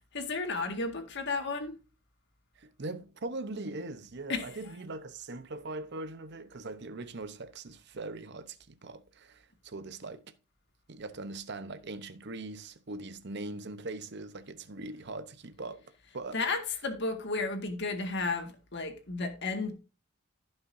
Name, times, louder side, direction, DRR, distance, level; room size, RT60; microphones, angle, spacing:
voice 1, 0.1-1.8 4.3-4.7 16.3-19.7, left 3 dB, 60° left, 1.8 m, -33 dB
voice 2, 2.6-10.3 10.9-16.4, right 2 dB, 55° right, 0.9 m, -41 dB
15.0 x 5.7 x 2.7 m
head